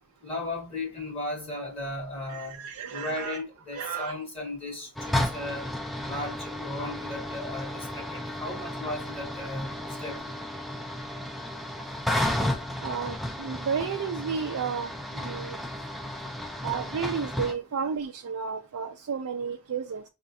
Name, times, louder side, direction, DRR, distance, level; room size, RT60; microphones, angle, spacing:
voice 1, 0.2-2.6 2.9-5.6 6.0-10.3, left 2 dB, 25° left, 1.1 m, -36 dB
voice 2, 2.3-3.4 3.7-4.1 12.8-15.6 16.6-20.0, right 6 dB, 75° right, 0.4 m, -32 dB
sound 1, 5.0-17.5, left 1 dB, ahead, 0.4 m, -33 dB
5.1 x 2.4 x 2.6 m
head